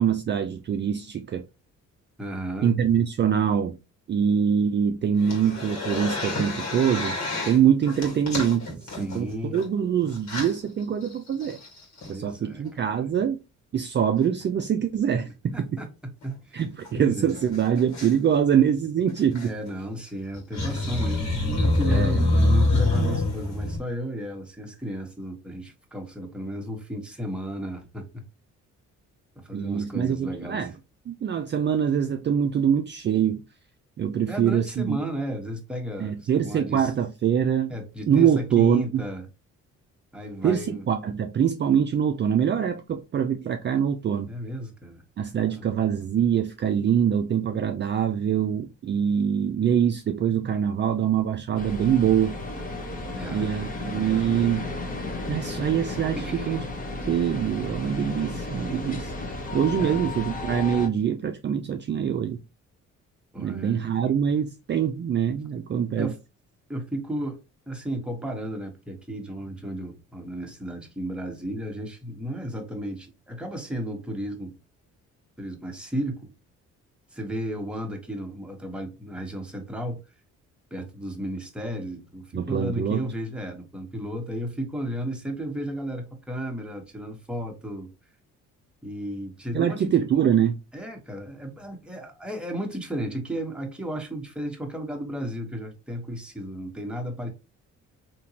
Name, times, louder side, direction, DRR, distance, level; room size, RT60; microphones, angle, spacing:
voice 1, 0.0-1.4 2.6-3.8 4.1-7.2 7.4-11.6 12.1-13.4 13.7-15.7 16.5-19.5 21.9-22.2 29.5-30.7 31.1-33.4 34.0-35.0 36.0-37.7 38.1-39.0 40.4-44.3 45.2-52.4 53.3-54.7 55.3-56.6 57.1-59.1 59.5-62.4 63.4-66.1 82.3-83.1 89.5-90.6, right 8 dB, 35° right, 0.4 m, -24 dB
voice 2, 2.2-2.7 9.0-9.6 12.1-13.2 15.5-15.9 16.2-16.6 16.9-17.4 19.4-28.2 29.4-30.7 34.3-36.9 37.7-39.3 40.1-40.9 44.3-45.0 45.5-45.6 53.1-53.5 53.9-54.5 56.2-56.6 59.8-60.1 63.3-64.1 66.0-66.2 66.7-67.4 67.7-74.5 75.4-76.3 77.1-80.0 80.7-87.9 88.8-90.1 90.7-97.3, equal, 5° right, 1.1 m, -34 dB
sound 1, 5.2-7.6 7.8-9.6 10.2-10.5 11.1-11.2 11.4-12.1 14.2-14.4 16.2-16.3 16.6-16.7 16.9-17.0 17.3-18.1 19.2-19.5 20.3-23.8, left 2 dB, 65° left, 1.7 m, -26 dB
sound 2, 51.6-60.9, left 2 dB, 30° left, 1.0 m, -33 dB
3.5 x 2.9 x 2.8 m
cardioid pair, 90°, 30 cm